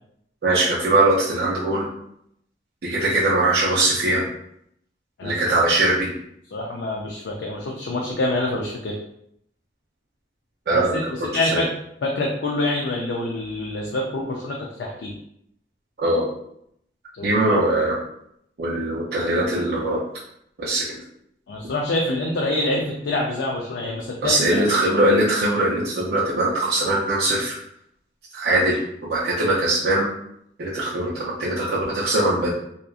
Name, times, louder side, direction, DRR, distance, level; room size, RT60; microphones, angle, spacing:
voice 1, 0.4-1.9 2.8-4.3 5.2-6.1 10.7-11.0 11.3-11.6 16.0-16.3 17.2-18.0 18.6-20.0 20.6-21.0 24.2-27.6 28.3-30.1 30.6-32.5, right 1 dB, 60° right, -5 dB, 0.5 m, -21 dB
voice 2, 6.5-9.0 10.7-11.7 12.0-15.1 17.1-17.3 21.5-24.6 24.9-25.0, left 2 dB, 85° left, -1 dB, 0.4 m, -26 dB
2.8 x 2.4 x 2.3 m, 0.73 s
head